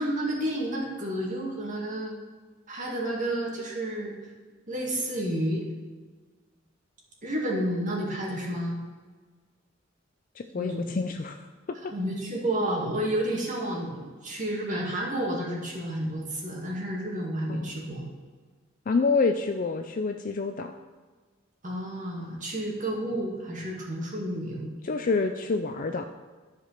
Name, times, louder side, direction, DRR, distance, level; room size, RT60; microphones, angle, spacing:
voice 1, 0.0-2.2 2.7-4.2 4.7-5.7 7.2-8.8 10.6-10.9 11.9-18.1 21.6-24.7, right 1 dB, 40° right, -2 dB, 2.2 m, -30 dB
voice 2, 10.4-11.4 17.5-17.8 18.9-20.7 24.8-26.1, left 4 dB, 45° left, 6 dB, 0.4 m, -27 dB
11.5 x 5.0 x 5.8 m, 1.4 s
head